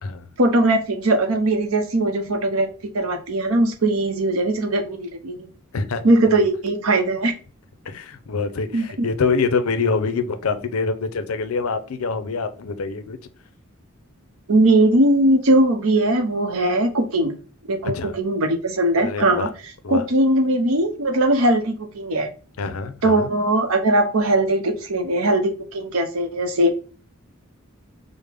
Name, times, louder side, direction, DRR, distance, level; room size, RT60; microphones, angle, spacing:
voice 1, 0.4-5.5 6.0-7.3 8.7-9.1 14.5-17.3 17.7-19.5 19.9-22.3 23.0-26.7, right 1 dB, 75° right, 0.7 m, -20 dB
voice 2, 7.9-13.2 17.9-18.2 19.0-19.5 19.8-20.0 22.6-23.3, left 4 dB, 80° left, 0.5 m, -25 dB
4.9 x 2.1 x 3.4 m
head